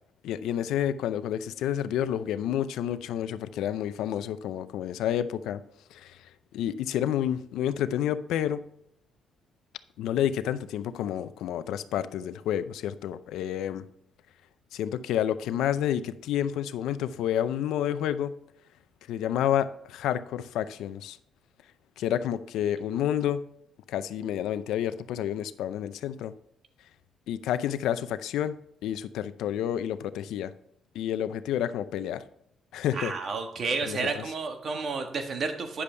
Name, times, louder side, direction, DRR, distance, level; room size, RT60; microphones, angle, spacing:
voice 1, 0.2-5.6 5.9-6.2 6.5-8.6 10.0-13.8 14.7-18.4 19.1-21.2 22.0-23.5 23.9-26.3 27.3-30.5 30.9-32.2 32.7-33.1 33.8-34.2, left 10 dB, 85° left, 13 dB, 0.5 m, -29 dB
voice 2, 32.9-35.8, right 4 dB, 55° right, 5 dB, 1.5 m, -31 dB
10.0 x 6.8 x 3.3 m, 0.75 s
cardioid pair, 90°, 0 cm